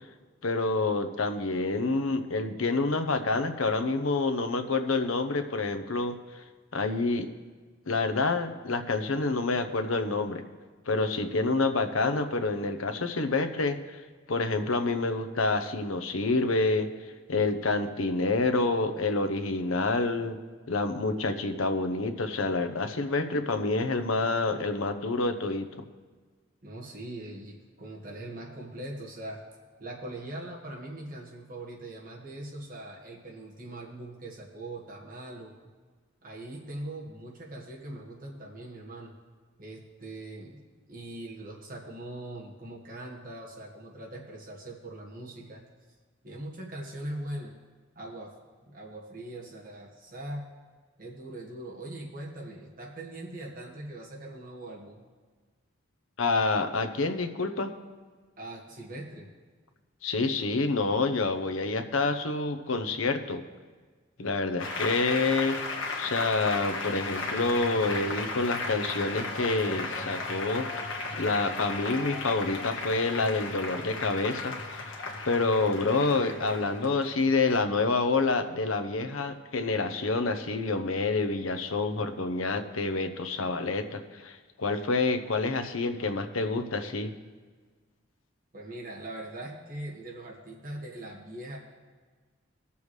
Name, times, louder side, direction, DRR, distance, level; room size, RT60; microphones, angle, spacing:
voice 1, 0.4-6.4 6.7-7.3 7.9-10.4 10.9-14.0 14.3-16.9 17.3-20.4 20.7-25.7 56.2-57.7 60.0-63.4 64.2-65.6 66.0-70.7 71.1-74.9 75.2-87.1, left 3 dB, 85° left, 8 dB, 0.8 m, -28 dB
voice 2, 26.6-29.4 29.8-35.5 36.2-39.1 39.6-40.6 40.9-45.6 46.2-47.6 47.9-48.3 48.6-50.5 51.0-55.0 58.4-59.3 88.5-91.6, right 1 dB, 40° right, -2 dB, 1.7 m, -41 dB
Applause, 64.6-77.6, left 3 dB, 70° left, 1.4 m, -35 dB
19.5 x 7.0 x 3.2 m, 1.5 s
head